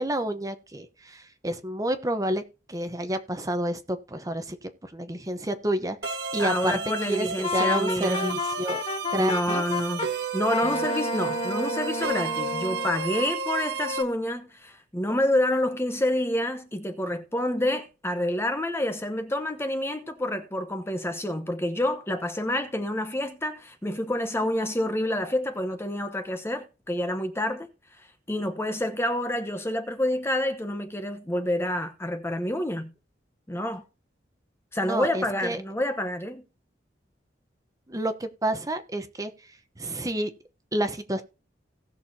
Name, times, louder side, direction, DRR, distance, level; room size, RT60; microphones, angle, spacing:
voice 1, 0.0-2.4 2.7-6.8 7.1-8.8 9.1-9.6 10.6-10.8 34.8-35.6 37.9-39.3 39.8-40.3 40.7-41.2, right 1 dB, 20° right, 0.9 m, -29 dB
sound 1, 6.0-14.0, right 5 dB, 65° right, 1.6 m, -32 dB
voice 2, 6.4-8.4 9.2-10.1 10.3-27.7 28.3-32.9 33.5-33.8 34.7-36.5, left 1 dB, 15° left, 1.0 m, -28 dB
Wind instrument woodwind instrument, 7.4-10.1 10.5-12.9, left 3 dB, 30° left, 0.6 m, -30 dB
18.0 x 6.4 x 2.8 m
head